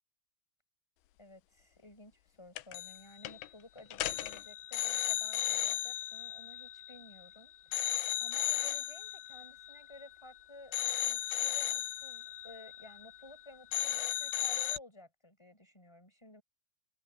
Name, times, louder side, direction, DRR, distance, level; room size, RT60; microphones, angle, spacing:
voice 1, 1.2-7.5 8.2-10.7 11.0-16.4, left 1 dB, 5° left, 5.0 m, -54 dB
sound 1, 2.6-3.0 3.3-3.5 3.9-7.3 7.7-10.3 10.7-13.4 13.7-14.8, left 15 dB, 85° left, 3.2 m, -35 dB
omnidirectional pair, 5.2 m